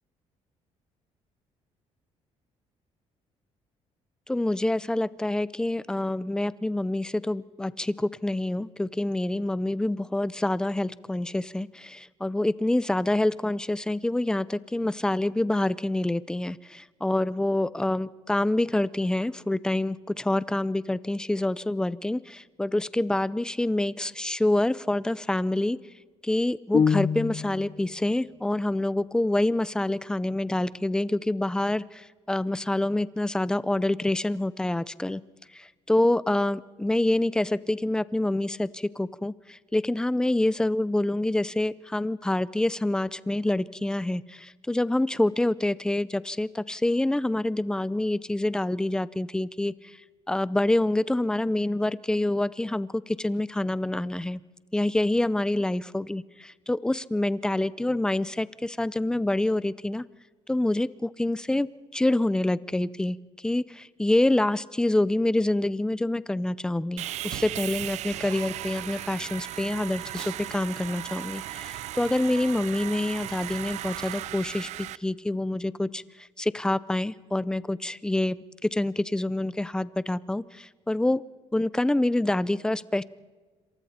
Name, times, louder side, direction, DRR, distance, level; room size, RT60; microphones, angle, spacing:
voice 1, 4.3-25.8 26.2-35.2 35.5-50.0 50.3-54.4 54.7-60.0 60.5-78.4 78.6-81.2 81.5-83.0, left 1 dB, 5° left, 18 dB, 0.6 m, -27 dB
sound 1, 26.7-27.8, left 6 dB, 35° left, 0.8 m, -24 dB
Sawing, 67.0-75.0, right 14 dB, 75° right, 0.6 m, -36 dB
27.5 x 26.5 x 4.3 m, 1.4 s
cardioid pair, 135°, 12 cm